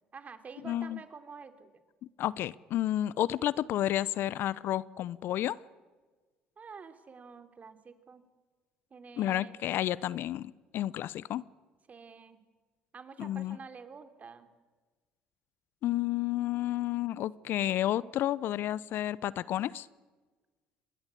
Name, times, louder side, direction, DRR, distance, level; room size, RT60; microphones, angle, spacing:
voice 1, 0.0-1.7 6.6-8.2 8.9-9.6 11.9-12.4 12.9-14.5, right 5 dB, 40° right, 9 dB, 3.1 m, -48 dB
voice 2, 0.6-1.0 2.2-5.6 9.2-11.4 13.2-13.6 15.8-19.9, left 13 dB, 60° left, 21 dB, 0.7 m, -31 dB
26.5 x 21.0 x 8.4 m, 1.3 s
hypercardioid pair, 65°, 4 cm